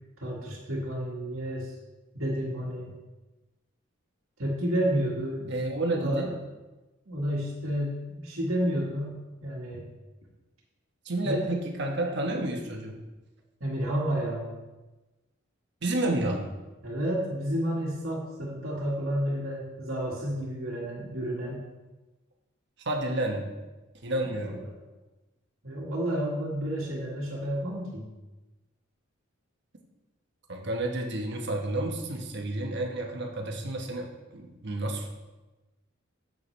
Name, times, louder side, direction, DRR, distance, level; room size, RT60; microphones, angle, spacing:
voice 1, 0.2-1.7 2.1-2.9 4.4-5.6 5.9-6.4 7.1-9.9 11.2-11.5 13.6-14.5 16.8-21.6 24.4-24.5 25.6-28.1, equal, 85° right, -5 dB, 1.7 m, -31 dB
voice 2, 5.5-6.3 11.0-13.0 15.8-16.4 22.8-23.5 24.0-24.6 30.5-34.1 34.3-35.1, right 1 dB, 60° right, 2 dB, 1.2 m, -30 dB
8.0 x 7.7 x 3.2 m, 1.1 s
head